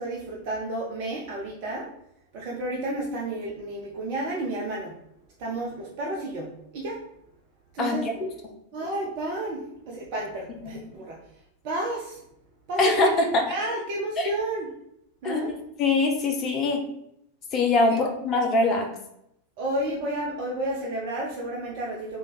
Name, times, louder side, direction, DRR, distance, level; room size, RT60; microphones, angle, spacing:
voice 1, 0.0-1.9 2.3-4.9 5.4-7.0 7.7-8.0 8.7-11.2 11.6-12.2 12.7-13.1 13.5-14.7 15.2-15.5 18.0-18.1 19.6-22.2, right 1 dB, 45° right, -3 dB, 0.6 m, -31 dB
voice 2, 7.8-8.1 10.6-10.8 12.8-13.4 14.2-14.3 15.2-16.8 17.5-18.9, left 3 dB, 30° left, 1 dB, 0.6 m, -23 dB
3.2 x 2.4 x 4.0 m, 0.78 s
figure-of-eight pair, 90°, 0 cm